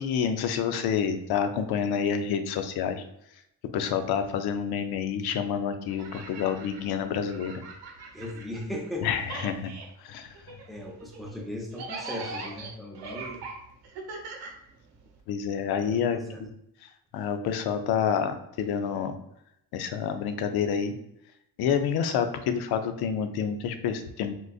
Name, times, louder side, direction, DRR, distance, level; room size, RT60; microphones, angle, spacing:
voice 1, 0.0-3.0 3.7-7.6 9.0-9.7 10.0-10.6 15.3-16.5 16.8-19.2 19.7-20.9 21.6-24.3, left 7 dB, 80° left, 8 dB, 0.5 m, -28 dB
sound 1, 5.8-8.9 9.2-15.2, right 3 dB, 85° right, 0.8 m, -41 dB
voice 2, 8.1-9.1 10.7-13.4 15.8-16.4, left 1 dB, ahead, -1 dB, 0.8 m, -37 dB
3.7 x 2.5 x 2.4 m, 0.78 s
cardioid pair, 95°, 38 cm